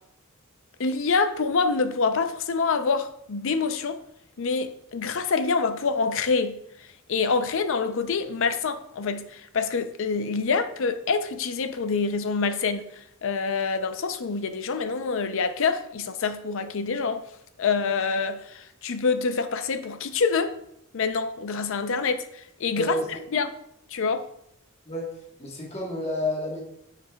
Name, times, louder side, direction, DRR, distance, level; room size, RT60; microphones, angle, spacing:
voice 1, 0.8-4.0 4.4-6.6 7.1-12.9 13.2-17.2 17.6-20.5 20.9-22.3 22.6-23.6 23.9-24.3, left 4 dB, 65° left, 0.5 m, -26 dB
voice 2, 22.7-23.2 24.8-26.6, left 1 dB, 30° left, 1.3 m, -30 dB
9.5 x 5.8 x 2.3 m
head